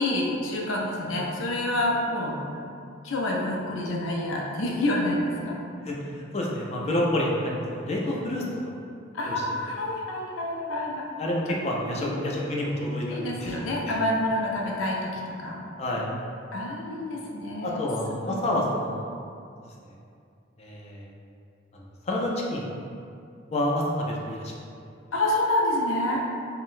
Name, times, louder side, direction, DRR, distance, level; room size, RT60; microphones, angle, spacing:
voice 1, 0.0-2.4 3.0-5.6 9.1-11.1 11.5-11.6 12.0-12.2 13.1-15.6 16.5-17.8 18.3-18.4 25.1-26.2, left 1 dB, 90° left, -1 dB, 0.5 m, -28 dB
voice 2, 6.3-8.4 9.2-9.4 11.2-14.0 15.8-16.1 17.6-19.1 20.6-21.1 22.1-22.7 23.5-24.5, left 1 dB, 35° left, -3 dB, 0.4 m, -28 dB
3.7 x 2.1 x 2.5 m, 2.4 s
head